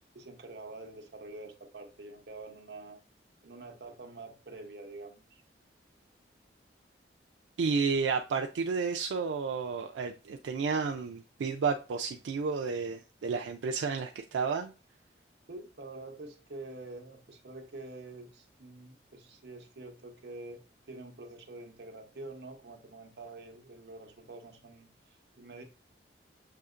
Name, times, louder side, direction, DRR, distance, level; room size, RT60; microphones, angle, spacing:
voice 1, 0.1-3.0 3.4-5.2 15.5-20.6 20.9-24.9 25.4-25.6, right 2 dB, 65° right, 4 dB, 0.8 m, -46 dB
voice 2, 7.6-14.7, right 5 dB, 85° right, 3 dB, 0.4 m, -31 dB
6.6 x 2.8 x 2.4 m, 0.32 s
head